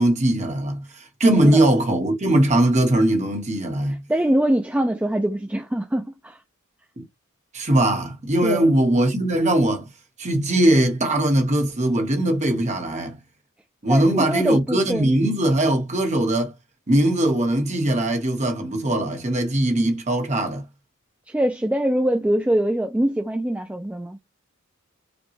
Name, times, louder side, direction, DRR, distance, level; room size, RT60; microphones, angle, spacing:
voice 1, 0.0-4.0 7.0-7.1 7.5-9.9 10.2-13.2 13.8-16.5 16.9-20.6, right 1 dB, 30° right, 1.1 m, -20 dB
voice 2, 3.9-6.4 8.4-8.7 13.9-15.2 21.3-24.2, right 1 dB, 5° right, 0.3 m, -23 dB
5.1 x 2.2 x 3.1 m
head